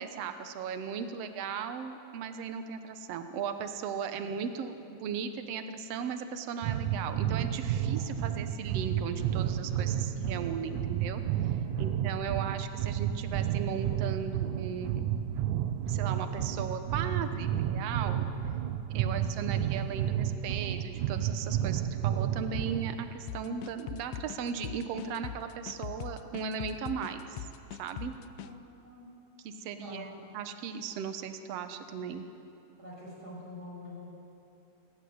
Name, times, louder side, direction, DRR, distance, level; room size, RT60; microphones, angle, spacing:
voice 1, 0.0-15.1 15.9-18.3 18.9-27.4 27.8-28.1 29.4-32.2, right 7 dB, 65° right, 8 dB, 1.9 m, -37 dB
sound 1, 6.6-23.0, right 10 dB, 80° right, 2.2 m, -31 dB
voice 2, 11.6-12.1 19.0-19.3 28.8-29.0 29.8-30.1 32.8-34.0, left 1 dB, 30° right, -6 dB, 7.7 m, -45 dB
sound 2, 23.3-28.5, left 10 dB, 90° left, 2.1 m, -41 dB
27.5 x 11.5 x 9.5 m, 2.8 s
omnidirectional pair, 3.5 m